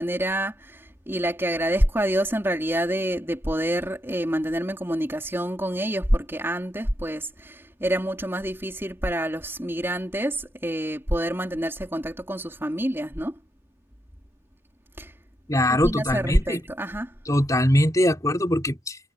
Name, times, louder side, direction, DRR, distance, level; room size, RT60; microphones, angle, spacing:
voice 1, 0.0-13.4 15.0-15.1 15.7-17.1, right 1 dB, 10° right, 3.7 m, -27 dB
voice 2, 15.5-16.6 17.3-19.0, left 1 dB, 15° left, 4.1 m, -22 dB
head